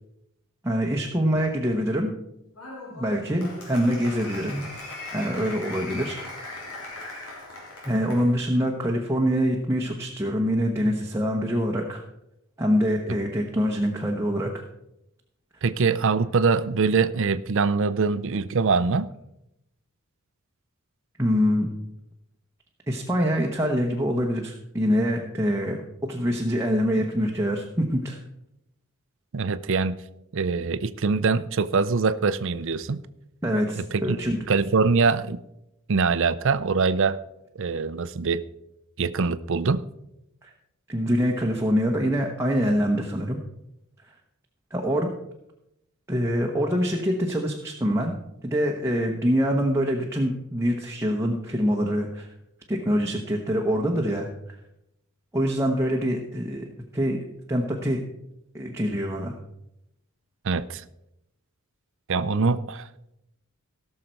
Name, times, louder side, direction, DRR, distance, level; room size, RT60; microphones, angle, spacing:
voice 1, 0.6-2.1 2.9-4.6 5.1-6.2 7.8-12.0 12.6-14.6 21.2-21.7 22.9-25.8 26.1-28.2 33.4-34.4 40.4-40.5 40.9-43.4 44.7-45.1 46.1-48.1 48.4-52.3 52.7-54.6 55.3-56.6 56.9-57.2 57.5-58.0 58.5-59.4, equal, 10° right, 0 dB, 1.0 m, -25 dB
Applause, 2.5-8.3, left 2 dB, 85° left, 3.5 m, -39 dB
voice 2, 15.6-19.1 29.3-30.0 30.3-33.0 33.8-34.2 34.5-35.4 35.9-37.2 37.6-38.4 39.0-39.8 60.4-60.8 62.1-62.9, right 4 dB, 60° right, 15 dB, 0.5 m, -23 dB
17.0 x 6.6 x 4.5 m, 0.84 s
head